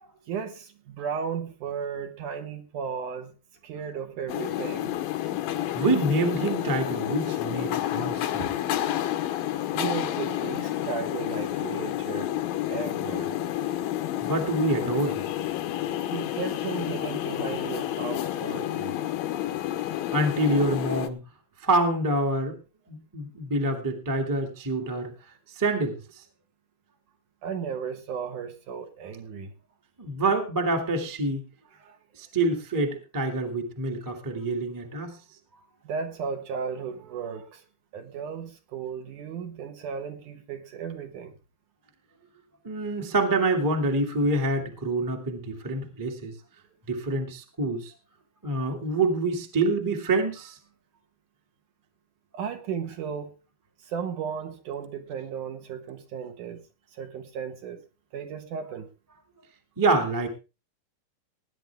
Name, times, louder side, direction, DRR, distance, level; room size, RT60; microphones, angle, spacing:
voice 1, 0.3-3.4 3.6-5.0 8.4-8.5 9.7-12.3 12.7-13.3 16.1-19.0 27.4-29.5 31.7-32.0 35.8-37.6 37.9-41.3 52.3-53.4 53.8-56.6 56.9-57.8 58.1-58.9, right 7 dB, 65° right, 2.6 m, -35 dB
sound 1, 4.3-21.1, left 12 dB, 75° left, 2.5 m, -30 dB
voice 2, 5.7-8.4 14.2-15.2 20.1-21.2 21.6-22.6 22.9-25.1 25.5-26.0 30.0-31.4 32.2-35.1 42.6-46.3 46.9-47.9 48.4-50.6 59.8-60.3, right 2 dB, 10° right, 1.1 m, -26 dB
19.0 x 10.0 x 3.4 m
omnidirectional pair, 4.4 m